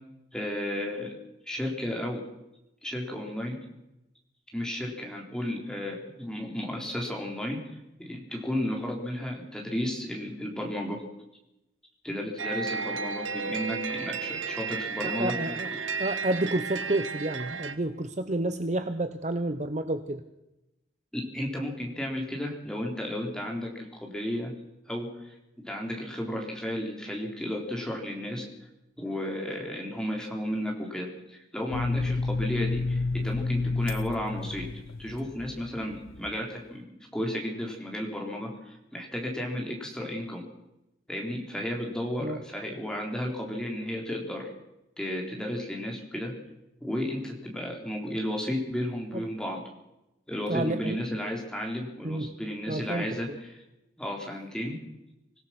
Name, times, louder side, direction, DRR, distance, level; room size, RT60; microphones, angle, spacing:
voice 1, 0.3-1.1 1.5-2.2 2.8-3.6 4.5-7.6 8.0-11.0 12.0-15.5 21.1-24.5 24.9-25.4 25.6-28.5 29.0-34.7 35.0-40.4 41.1-44.5 45.0-46.3 46.8-49.6 50.3-53.6 54.0-54.8, left 1 dB, 5° left, 0 dB, 3.8 m, -33 dB
sound 1, 12.4-17.7, right 5 dB, 75° right, 1.5 m, -33 dB
voice 2, 15.0-15.7 16.0-20.2 42.2-42.4 49.1-49.2 50.5-51.0 52.0-52.3 52.7-53.2, right 1 dB, 35° right, 10 dB, 0.8 m, -30 dB
sound 2, 31.7-36.4, left 3 dB, 85° left, 0.7 m, -30 dB
25.5 x 17.0 x 6.0 m, 0.92 s
head